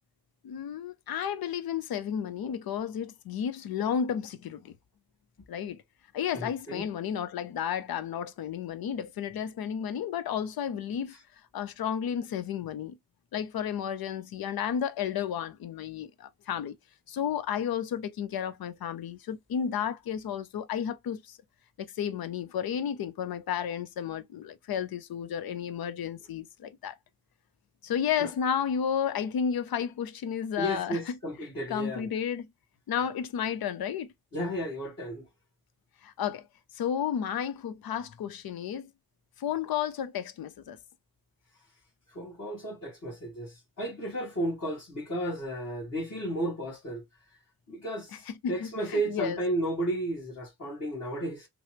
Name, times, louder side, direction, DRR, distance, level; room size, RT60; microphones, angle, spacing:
voice 1, 0.4-4.7 5.5-5.8 6.1-11.2 11.5-13.0 13.3-16.7 17.1-21.4 21.8-27.0 27.8-31.2 31.7-32.5 32.9-34.1 36.0-36.5 36.7-38.9 39.4-40.8 48.3-49.4, left 8 dB, 75° left, 0.6 m, -32 dB
voice 2, 6.3-6.8 28.2-28.3 30.6-32.1 34.3-35.3 42.1-47.0 47.7-48.2 48.5-51.5, right 1 dB, 50° left, 2.5 m, -33 dB
5.9 x 2.0 x 3.3 m
cardioid pair, 90°, 37 cm